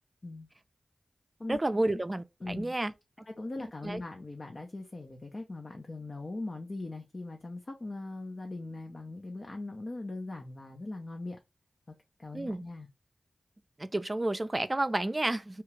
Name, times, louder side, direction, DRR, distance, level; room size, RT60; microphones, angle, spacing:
voice 1, 1.5-2.9 3.8-4.0 12.3-12.6 13.8-15.6, right 1 dB, 35° right, 0.4 m, -30 dB
voice 2, 2.4-2.7 3.3-11.4 11.9-12.9, left 2 dB, 50° left, 0.6 m, -40 dB
2.9 x 2.3 x 3.0 m
cardioid pair, 45°, 0 cm